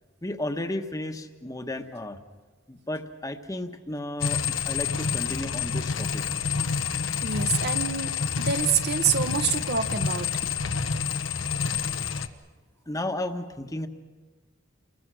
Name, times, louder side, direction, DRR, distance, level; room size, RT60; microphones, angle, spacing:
voice 1, 0.2-2.2 2.7-6.2 12.9-13.9, left 1 dB, 20° left, 6 dB, 1.2 m, -33 dB
sound 1, 4.2-12.3, left 6 dB, 85° left, 1.2 m, -28 dB
voice 2, 7.2-10.6, right 6 dB, 55° right, 8 dB, 1.1 m, -27 dB
30.0 x 22.0 x 6.3 m, 1.3 s
head